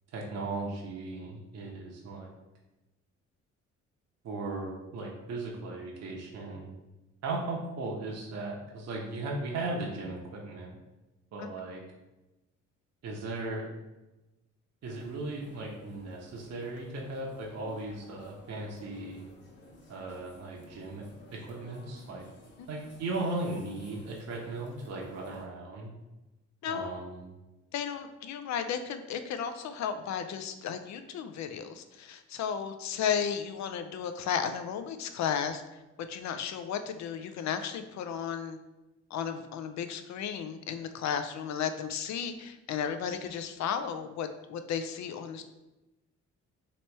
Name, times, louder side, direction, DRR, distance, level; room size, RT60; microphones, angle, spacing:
voice 1, 0.1-2.3 4.2-6.7 7.2-10.8 11.3-11.8 13.0-13.7 14.8-19.2 19.9-22.2 22.7-25.9 26.7-27.3, right 2 dB, 60° right, -2 dB, 0.8 m, -37 dB
sound 1, 14.8-25.5, left 1 dB, 35° left, 0.9 m, -55 dB
voice 2, 27.7-35.6 36.1-38.6 39.1-45.4, left 7 dB, 65° left, 9 dB, 0.5 m, -34 dB
3.0 x 3.0 x 4.5 m, 1.0 s
cardioid pair, 90°, 30 cm